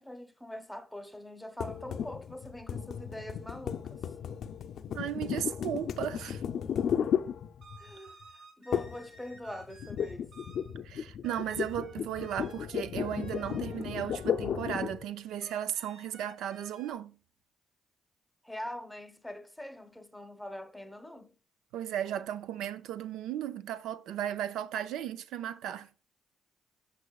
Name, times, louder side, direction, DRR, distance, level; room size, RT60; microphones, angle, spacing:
voice 1, 0.0-4.0 7.8-10.3 18.4-21.3, left 1 dB, 5° left, 1.0 m, -43 dB
sound 1, 1.6-7.9 8.7-9.1 9.4-15.1, left 8 dB, 65° left, 0.5 m, -34 dB
voice 2, 4.9-6.4 10.8-17.1 21.7-25.9, right 10 dB, 85° right, 0.4 m, -35 dB
sound 2, 7.6-10.8 11.2-14.7 15.4-16.9, right 3 dB, 70° right, 3.9 m, -53 dB
8.4 x 5.5 x 2.4 m
cardioid pair, 90°, 0 cm